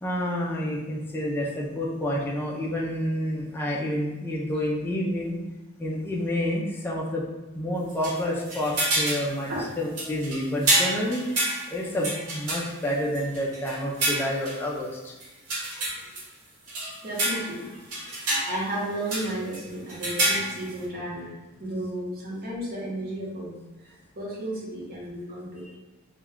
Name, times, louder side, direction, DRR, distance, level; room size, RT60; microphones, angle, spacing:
voice 1, 0.0-5.4 5.8-7.2 7.5-9.5 9.8-11.4 11.7-15.1, equal, 10° left, -4 dB, 0.3 m, -29 dB
sound 1, 7.9-9.3 9.6-9.7 10.0-14.6 15.2-16.2 16.7-17.6 17.9-18.8 19.1-19.6 19.9-20.7, right 1 dB, 90° right, 0.9 m, -28 dB
voice 2, 9.2-9.7 15.6-16.0 17.0-25.8, right 1 dB, 45° right, -5 dB, 0.9 m, -34 dB
2.2 x 2.2 x 3.5 m, 1.1 s
head